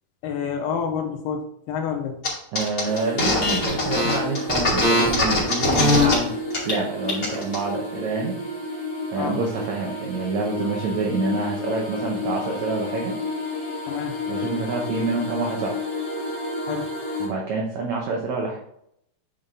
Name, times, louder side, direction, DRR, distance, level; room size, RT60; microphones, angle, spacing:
voice 1, 0.2-2.2 9.2-9.4 13.9-14.2 16.7-16.9, left 7 dB, 80° left, 4 dB, 2.8 m, -28 dB
sound 1, 2.2-2.3 2.5-6.1 6.5-6.7 7.0-7.6, left 2 dB, 25° left, 2.3 m, -21 dB
voice 2, 2.5-6.4 6.6-8.4 9.1-13.1 14.3-15.8 17.2-18.6, right 3 dB, 90° right, -1 dB, 1.5 m, -27 dB
sound 2, 2.8-17.3, left 2 dB, 50° left, 0.6 m, -31 dB
8.5 x 5.4 x 3.7 m, 0.74 s
omnidirectional pair, 4.7 m